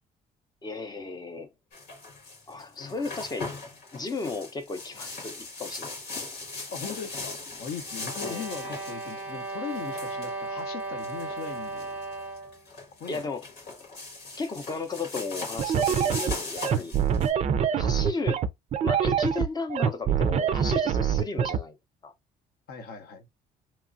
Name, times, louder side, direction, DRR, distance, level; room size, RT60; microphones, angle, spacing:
voice 1, 0.6-1.5 2.5-3.5 3.9-5.9 8.2-8.4 13.1-13.4 14.4-16.9 17.8-18.4 18.8-21.7 22.0-22.1, left 3 dB, 25° left, 0.6 m, -34 dB
sound 1, 1.7-17.3, left 3 dB, 85° left, 1.7 m, -39 dB
voice 2, 6.7-12.0 13.0-13.3 16.7-16.9 22.7-23.3, left 6 dB, 65° left, 0.8 m, -39 dB
sound 2, 7.9-12.6, right 2 dB, 15° right, 0.8 m, -36 dB
sound 3, 15.6-21.6, right 8 dB, 40° right, 0.4 m, -25 dB
3.0 x 2.3 x 2.5 m
cardioid pair, 110°, 17 cm